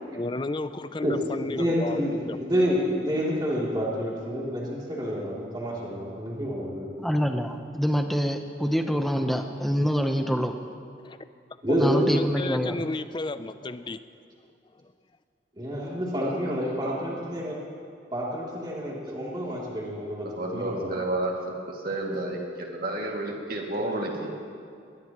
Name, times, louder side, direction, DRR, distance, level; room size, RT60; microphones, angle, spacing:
voice 1, 0.1-2.4 11.0-11.2 11.7-14.0 14.8-14.9, left 2 dB, 25° left, 12 dB, 0.5 m, -33 dB
voice 2, 1.4-6.9 11.6-12.2 15.6-17.6 18.1-21.0 23.8-23.9, equal, 25° right, -5 dB, 3.0 m, -28 dB
voice 3, 7.0-10.5 11.8-12.8, equal, ahead, 5 dB, 0.9 m, -26 dB
voice 4, 16.8-17.2 20.2-22.4 22.8-24.3, right 1 dB, 50° right, -1 dB, 2.4 m, -31 dB
20.5 x 20.5 x 3.1 m, 2.4 s
head